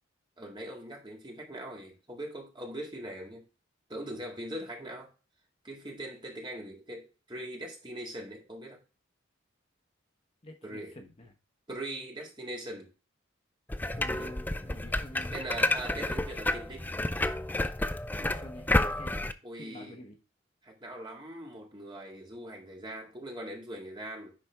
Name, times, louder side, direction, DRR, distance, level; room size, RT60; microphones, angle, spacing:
voice 1, 0.4-3.4 3.9-5.1 5.6-8.8 10.6-10.9 11.7-12.9 14.2-14.3 15.3-17.0 19.4-20.0 20.6-24.3, right 1 dB, 25° right, 2.0 m, -41 dB
voice 2, 10.4-11.3 13.9-15.7 18.2-19.2 19.5-20.2, equal, 30° left, 0.9 m, -48 dB
sound 1, 13.7-19.3, left 2 dB, 10° left, 0.4 m, -30 dB
10.5 x 4.2 x 3.5 m
head